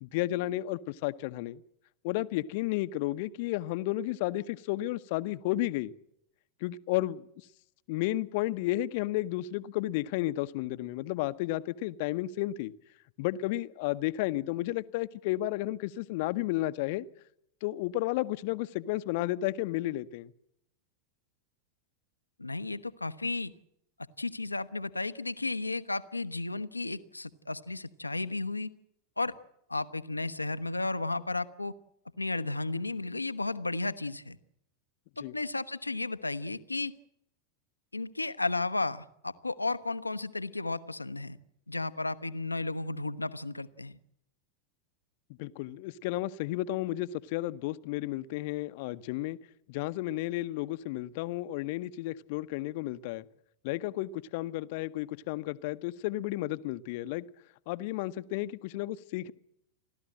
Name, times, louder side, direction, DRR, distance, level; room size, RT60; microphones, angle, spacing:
voice 1, 0.0-1.6 2.0-5.9 6.6-7.3 7.9-12.7 13.2-17.0 17.6-20.3 35.2-35.3 45.4-49.4 49.7-53.2 53.6-57.3 57.7-59.3, left 16 dB, 50° left, 0.8 m, -32 dB
voice 2, 22.4-23.5 24.2-28.7 29.2-29.3 29.7-31.7 32.2-34.4 35.2-36.9 37.9-41.4 41.7-44.0, left 2 dB, 85° left, 0.8 m, -33 dB
29.5 x 13.0 x 7.6 m
figure-of-eight pair, 90°, 0 cm